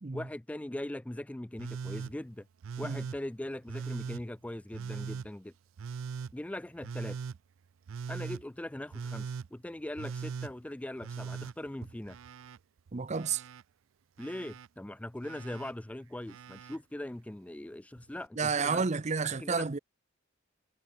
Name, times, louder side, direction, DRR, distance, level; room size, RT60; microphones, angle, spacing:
voice 1, 0.1-2.5 2.8-5.5 6.3-7.2 8.1-12.2 14.2-18.8 19.4-19.6, left 1 dB, 5° left, 0.3 m, -40 dB
Telephone, 1.6-2.1 2.6-3.2 3.7-4.2 4.7-5.3 5.8-6.3 6.8-7.4 7.9-8.4 8.9-9.5 10.0-10.5 11.0-12.6 12.9-13.6 14.2-14.7 15.2-15.7 16.3-16.8 18.0-18.1, right 6 dB, 80° right, 0.4 m, -40 dB
voice 2, 12.9-13.4 18.4-19.8, right 5 dB, 35° right, 0.6 m, -30 dB
head